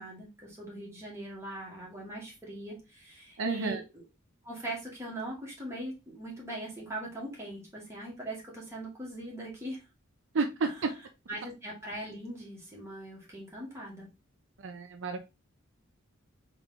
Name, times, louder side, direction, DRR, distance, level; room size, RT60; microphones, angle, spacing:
voice 1, 0.0-4.0 4.4-9.8 10.6-10.7 11.3-14.1, right 1 dB, 15° right, -4 dB, 1.9 m, -41 dB
voice 2, 3.4-3.8 10.3-10.9 14.6-15.2, right 4 dB, 65° right, 6 dB, 0.5 m, -30 dB
3.6 x 3.6 x 3.6 m, 0.26 s
head